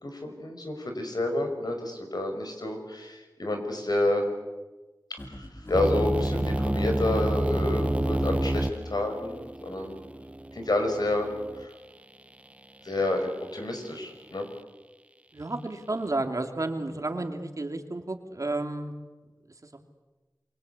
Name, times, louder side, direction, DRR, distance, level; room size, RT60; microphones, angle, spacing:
voice 1, 0.0-4.2 5.1-10.0 10.5-11.3 11.6-11.7 12.8-14.5, left 1 dB, 65° left, 4 dB, 5.8 m, -29 dB
sound 1, 5.2-6.3, left 1 dB, 30° left, 3.1 m, -44 dB
sound 2, 5.7-11.7, right 1 dB, 20° right, 1.0 m, -29 dB
voice 2, 15.3-18.9, right 2 dB, 50° right, 5 dB, 2.9 m, -31 dB
27.0 x 24.0 x 8.4 m, 1.2 s
wide cardioid pair, 60°, 7 cm